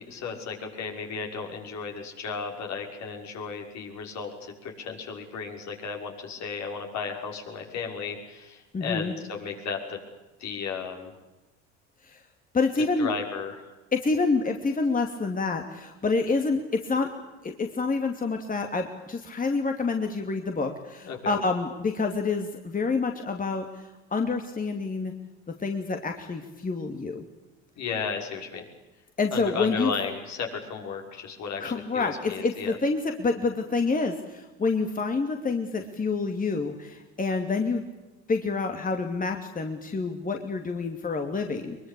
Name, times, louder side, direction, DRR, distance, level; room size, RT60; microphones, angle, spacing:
voice 1, 0.0-10.0 10.4-11.1 13.0-13.7 21.0-21.4 27.8-28.6 29.3-32.8, left 5 dB, 55° left, 2 dB, 6.1 m, -34 dB
voice 2, 8.7-9.1 12.0-12.2 12.5-13.1 13.9-17.1 17.4-23.8 24.1-25.1 25.6-27.2 29.2-29.9 31.6-37.8 38.3-41.8, left 4 dB, 25° left, 4 dB, 2.8 m, -27 dB
22.5 x 22.5 x 8.6 m, 1.1 s
hypercardioid pair, 75°, 33 cm